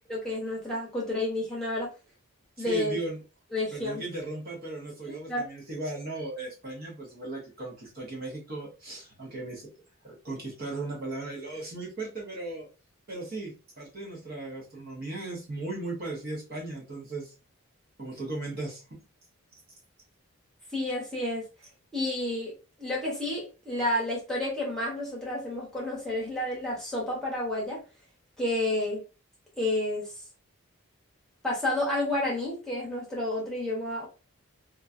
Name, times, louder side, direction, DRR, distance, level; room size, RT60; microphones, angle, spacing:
voice 1, 0.1-1.9 2.6-3.0 3.5-4.0 5.3-5.4 20.7-21.5 21.9-22.5 22.8-27.8 28.4-29.0 29.6-30.2 31.4-34.1, left 1 dB, ahead, -5 dB, 1.0 m, -30 dB
voice 2, 2.6-3.2 3.7-9.7 10.0-12.7 13.1-17.3 18.0-18.8, right 2 dB, 45° right, -3 dB, 0.9 m, -37 dB
3.0 x 2.4 x 2.5 m, 0.31 s
head